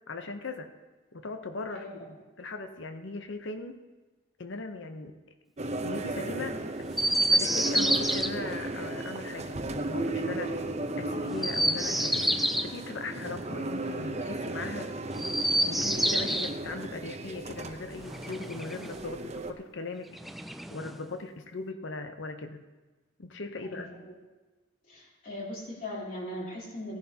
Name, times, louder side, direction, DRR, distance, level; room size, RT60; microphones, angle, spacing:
voice 1, 0.1-0.7 1.1-3.8 4.4-5.2 5.6-6.5 7.3-10.5 11.0-12.2 12.6-14.9 15.6-20.1 20.7-22.6 23.2-23.9, left 3 dB, 60° left, 8 dB, 0.8 m, -39 dB
sound 1, 5.6-19.5, right 2 dB, 35° right, 0.7 m, -35 dB
Chirp tweet, 6.9-8.3 11.3-12.7 15.1-16.5 18.0-19.0 20.1-21.0, right 1 dB, ahead, 0.3 m, -28 dB
voice 2, 23.6-24.1 24.9-27.0, left 1 dB, 45° left, -5 dB, 3.4 m, -40 dB
17.5 x 10.5 x 2.8 m, 1.2 s
head